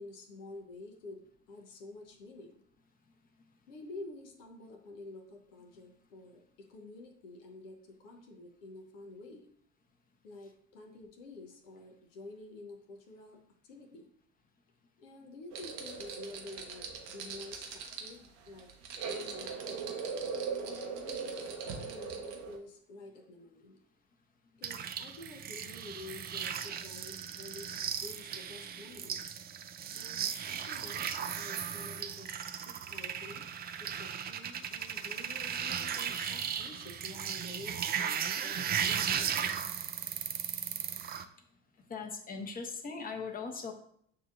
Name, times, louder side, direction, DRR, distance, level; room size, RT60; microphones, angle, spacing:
voice 1, 0.0-2.6 3.7-9.5 10.2-14.1 15.0-18.7 19.1-20.0 20.6-23.8 24.6-29.4 29.9-31.1 31.3-33.5 33.8-39.6, left 2 dB, 85° left, 2 dB, 0.8 m, -49 dB
sound 1, 15.5-22.6, right 5 dB, 75° right, 0.8 m, -40 dB
sound 2, 24.6-41.2, right 8 dB, 30° right, 0.4 m, -36 dB
voice 2, 41.9-43.7, left 5 dB, 25° left, 3 dB, 0.8 m, -39 dB
6.6 x 2.7 x 2.5 m, 0.67 s
hypercardioid pair, 65°, 36 cm